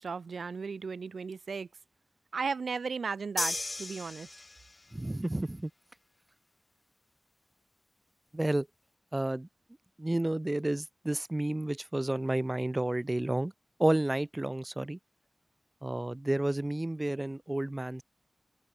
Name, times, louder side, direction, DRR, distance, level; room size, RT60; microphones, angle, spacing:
voice 1, 0.0-1.7 2.3-4.3, right 5 dB, 85° right, 1.5 m, -35 dB
sound 1, 3.4-4.9, left 2 dB, 40° left, 2.4 m, -35 dB
voice 2, 4.9-5.7 8.3-8.7 9.1-9.5 10.0-13.5 13.8-15.0 15.8-18.0, right 1 dB, 25° right, 1.0 m, -31 dB
open air
wide cardioid pair, 65°, 0 cm